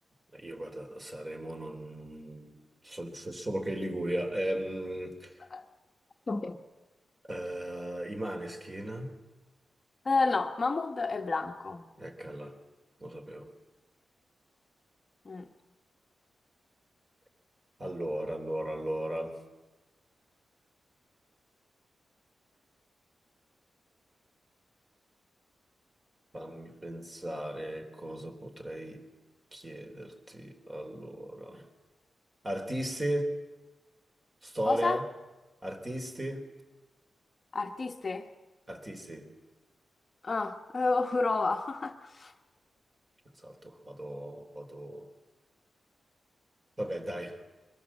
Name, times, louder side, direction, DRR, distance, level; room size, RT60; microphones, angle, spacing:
voice 1, 0.3-5.4 7.3-9.1 12.0-12.5 13.0-13.5 17.8-19.4 26.3-29.0 29.5-31.7 32.4-33.4 34.4-35.1 35.6-36.5 38.7-39.3 43.4-45.1 46.8-47.4, right 1 dB, 25° right, 4 dB, 3.7 m, -36 dB
voice 2, 6.3-6.6 10.0-11.9 15.2-15.5 34.7-35.0 37.5-38.3 40.2-42.3, left 3 dB, 40° left, 5 dB, 1.3 m, -30 dB
23.0 x 20.5 x 7.4 m, 1.2 s
wide cardioid pair, 105°, 0 cm